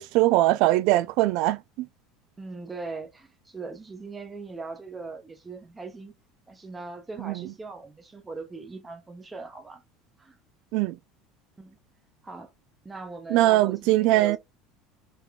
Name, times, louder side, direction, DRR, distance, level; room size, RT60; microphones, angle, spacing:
voice 1, 0.0-1.9 7.2-7.4 10.7-11.0 13.3-14.4, right 16 dB, 70° right, 0.3 m, -21 dB
voice 2, 2.4-6.1 6.5-9.8 10.2-10.4 11.6-11.8 12.2-12.5 12.8-14.4, right 3 dB, 15° right, 0.8 m, -40 dB
3.3 x 3.3 x 2.3 m
supercardioid pair, 110°, 0 cm